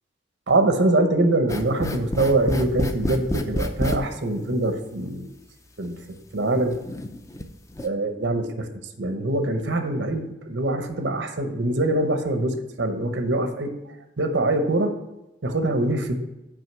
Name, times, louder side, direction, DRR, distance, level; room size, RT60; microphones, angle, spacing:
voice 1, 0.5-5.3 5.8-6.0 6.3-6.8 7.8-8.6 9.0-14.9 15.4-16.2, right 2 dB, 85° right, 7 dB, 0.9 m, -24 dB
sound 1, 1.5-4.0 5.0-5.1 5.8-5.9 6.7-7.4 7.7-7.9, left 1 dB, 15° left, 0.5 m, -28 dB
6.4 x 5.0 x 6.1 m, 0.96 s
head